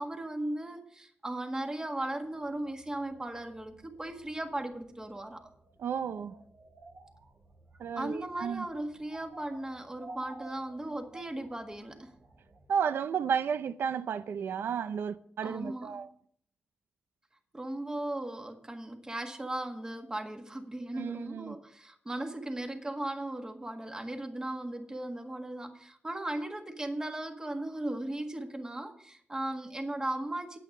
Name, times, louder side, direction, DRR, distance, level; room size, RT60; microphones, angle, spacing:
voice 1, 0.0-5.5 8.0-12.1 15.4-16.0 17.5-30.6, right 1 dB, 20° right, 1.7 m, -37 dB
sound 1, 2.2-12.7, right 2 dB, 70° right, 1.8 m, -54 dB
voice 2, 5.8-6.3 7.8-8.7 12.7-16.1 20.9-21.6, right 7 dB, 90° right, 0.5 m, -32 dB
9.2 x 8.7 x 6.5 m
cardioid pair, 80°, 4 cm